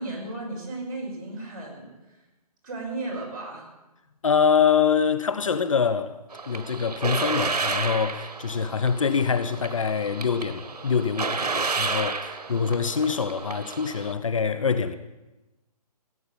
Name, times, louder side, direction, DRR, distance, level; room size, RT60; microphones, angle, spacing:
voice 1, 0.0-2.2 2.6-3.7, right 2 dB, 30° right, 5.6 m, -35 dB
voice 2, 4.2-6.2 6.5-15.0, left 6 dB, 55° left, 0.8 m, -24 dB
sound 1, 6.3-14.1, right 4 dB, 85° right, 1.5 m, -31 dB
16.5 x 8.5 x 8.8 m
hypercardioid pair, 175°, 20 cm